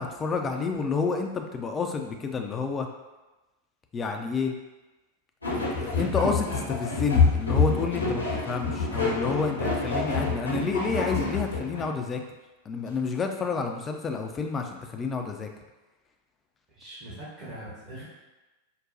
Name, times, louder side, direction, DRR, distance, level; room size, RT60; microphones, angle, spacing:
voice 1, 0.0-2.9 3.9-4.5 5.5-12.2 12.7-15.5, left 4 dB, 20° left, 4 dB, 0.4 m, -29 dB
sound 1, 5.4-11.9, left 4 dB, 80° left, 0.7 m, -27 dB
voice 2, 16.7-18.0, right 1 dB, 35° right, -9 dB, 1.1 m, -41 dB
4.8 x 2.2 x 2.6 m, 1.1 s
figure-of-eight pair, 90°, 0 cm